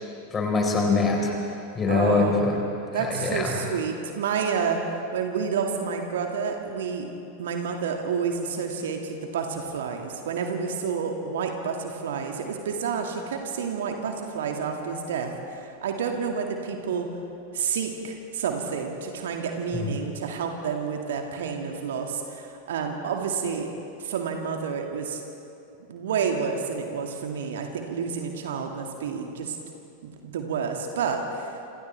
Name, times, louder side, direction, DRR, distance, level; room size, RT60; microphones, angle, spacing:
voice 1, 0.3-1.3 1.7-2.6 2.9-3.6 19.7-19.9, left 3 dB, 20° left, 0 dB, 4.4 m, -23 dB
voice 2, 1.9-2.4 2.9-4.8 5.1-7.1 7.4-17.1 17.5-23.7 24.0-25.2 25.9-29.6 30.0-31.5, right 6 dB, 60° right, 3 dB, 2.1 m, -29 dB
28.5 x 27.0 x 3.4 m, 2.7 s
figure-of-eight pair, 90°, 0 cm